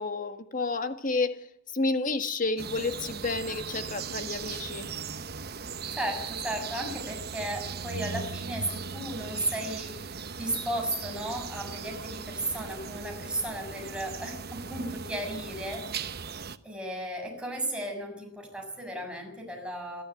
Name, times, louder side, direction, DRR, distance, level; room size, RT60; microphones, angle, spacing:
voice 1, 0.0-1.5 1.7-4.9, left 3 dB, 40° left, 1.8 m, -30 dB
sound 1, 2.6-16.6, right 5 dB, 50° right, 1.1 m, -38 dB
voice 2, 5.9-15.9 16.6-20.0, right 1 dB, 5° right, 7.1 m, -35 dB
27.5 x 13.5 x 9.3 m
head